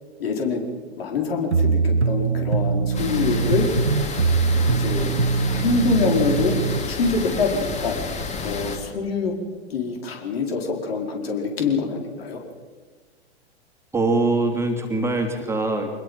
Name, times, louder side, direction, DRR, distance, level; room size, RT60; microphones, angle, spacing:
voice 1, 0.2-0.7 1.0-3.7 4.7-5.1 5.5-6.6 6.9-8.0 8.4-9.3 9.7-12.4, left 4 dB, 60° left, 2 dB, 4.9 m, -25 dB
sound 1, 1.5-6.8, right 4 dB, 90° right, 1.2 m, -22 dB
sound 2, 2.9-8.8, left 4 dB, 20° left, 2.9 m, -30 dB
voice 2, 13.9-16.0, right 2 dB, 10° right, 2 dB, 2.7 m, -23 dB
24.5 x 21.0 x 5.7 m, 1.4 s
figure-of-eight pair, 100°, 33 cm